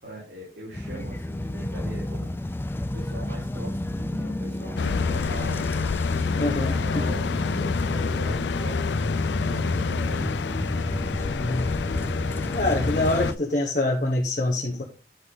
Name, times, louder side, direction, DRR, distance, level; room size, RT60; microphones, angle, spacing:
voice 1, 0.0-5.6 6.3-11.1, right 1 dB, 70° right, -6 dB, 4.4 m, -41 dB
sound 1, 0.7-13.4, left 1 dB, 15° left, 0.4 m, -30 dB
sound 2, 4.8-13.3, left 5 dB, 80° left, 0.4 m, -28 dB
voice 2, 6.4-6.7 11.3-11.8 12.5-14.8, left 2 dB, 45° left, -1 dB, 1.2 m, -25 dB
10.5 x 5.9 x 4.0 m, 0.35 s
head